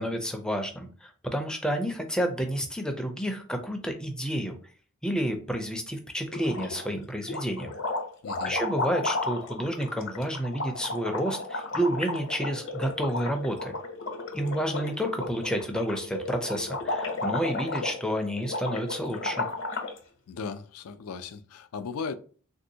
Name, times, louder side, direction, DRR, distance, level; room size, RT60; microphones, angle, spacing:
voice 1, 0.0-4.6 5.0-7.7 8.5-13.7 14.3-19.5, equal, 5° left, 0.4 m, -30 dB
sound 1, 6.3-6.9 7.2-20.0, left 2 dB, 60° left, 0.7 m, -33 dB
voice 2, 8.2-8.6 20.3-22.1, left 5 dB, 85° left, 0.4 m, -37 dB
3.4 x 2.6 x 2.7 m
head